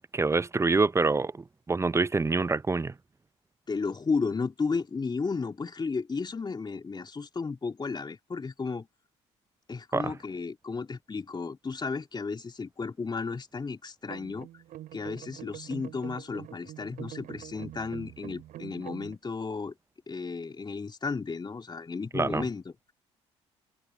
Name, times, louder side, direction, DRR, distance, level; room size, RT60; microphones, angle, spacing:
voice 1, 0.1-2.9 9.9-10.1 22.1-22.4, right 3 dB, 20° right, 0.7 m, -26 dB
voice 2, 3.7-8.9 9.7-14.5 14.9-19.7 20.1-22.9, left 4 dB, 30° left, 2.9 m, -33 dB
sound 1, 14.1-19.2, right 13 dB, 65° right, 4.0 m, -44 dB
open air
hypercardioid pair, 55°, 15 cm